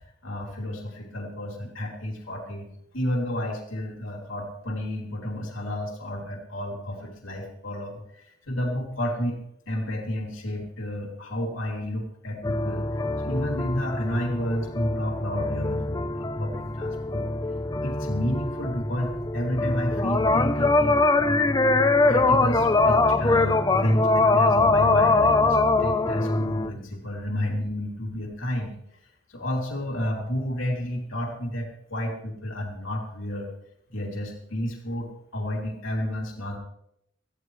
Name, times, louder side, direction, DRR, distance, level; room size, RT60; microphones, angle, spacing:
voice 1, 0.2-2.7 2.9-9.4 9.7-12.8 13.2-17.3 17.8-21.0 22.1-28.7 29.3-33.5 33.9-36.6, left 1 dB, 80° left, -1 dB, 2.8 m, -31 dB
sound 1, 12.4-26.7, left 2 dB, 20° left, 0.6 m, -23 dB
18.0 x 14.5 x 3.2 m, 0.75 s
head